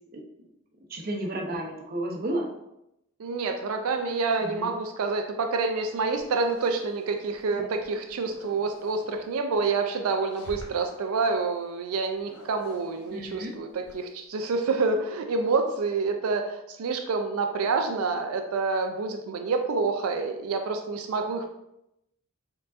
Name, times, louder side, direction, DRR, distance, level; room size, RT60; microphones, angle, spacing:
voice 1, 0.9-2.5 4.4-4.7 7.6-7.7 13.1-13.5, right 1 dB, 40° right, 0 dB, 0.6 m, -32 dB
voice 2, 3.2-21.5, right 4 dB, 85° right, 4 dB, 0.4 m, -28 dB
sound 1, 5.9-7.4 7.8-9.2 10.1-11.1 12.1-14.2, left 1 dB, 85° left, 0.8 m, -49 dB
4.5 x 3.8 x 2.5 m, 0.85 s
head